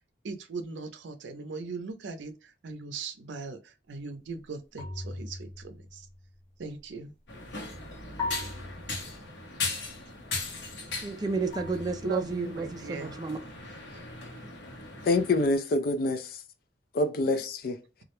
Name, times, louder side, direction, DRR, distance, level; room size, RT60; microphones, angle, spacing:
voice 1, 0.2-6.1 6.6-7.1 12.0-13.2 13.9-14.0, right 4 dB, 90° right, 0.5 m, -39 dB
sound 1, 4.8-6.4 8.2-9.6 11.5-12.8, left 2 dB, 20° left, 0.8 m, -40 dB
sound 2, 7.3-15.5, left 3 dB, 80° left, 0.8 m, -38 dB
voice 2, 11.0-13.4, right 3 dB, 20° right, 0.4 m, -32 dB
voice 3, 15.0-16.4 16.9-17.8, left 2 dB, 55° left, 0.4 m, -26 dB
2.3 x 2.0 x 2.9 m
head